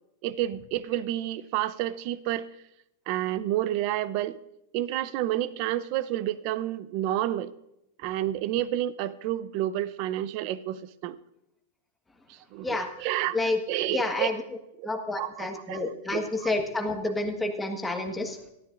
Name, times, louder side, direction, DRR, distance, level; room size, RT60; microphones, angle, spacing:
voice 1, 0.2-2.5 3.1-4.4 4.7-7.5 8.0-11.2 12.3-14.3 14.8-14.9 15.1-15.8 16.1-16.5, right 13 dB, 45° right, 16 dB, 0.7 m, -30 dB
voice 2, 13.9-14.4 14.8-18.5, left 2 dB, 10° left, 3 dB, 1.5 m, -29 dB
17.5 x 13.5 x 2.6 m, 0.85 s
supercardioid pair, 145°, 0 cm